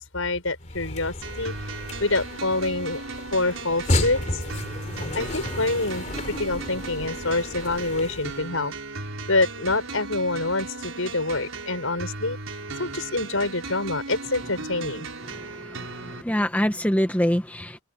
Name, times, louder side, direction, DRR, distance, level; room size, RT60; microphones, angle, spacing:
voice 1, 0.0-1.5 2.0-3.0 3.3-4.4 5.1-8.7 9.3-12.4 12.8-15.1, left 2 dB, 75° left, 6.2 m, -26 dB
sound 1, 0.6-8.5, left 1 dB, 35° left, 3.6 m, -32 dB
sound 2, 1.2-16.2, right 3 dB, 70° right, 6.5 m, -36 dB
voice 2, 15.3-17.8, equal, 5° left, 1.2 m, -25 dB
open air
head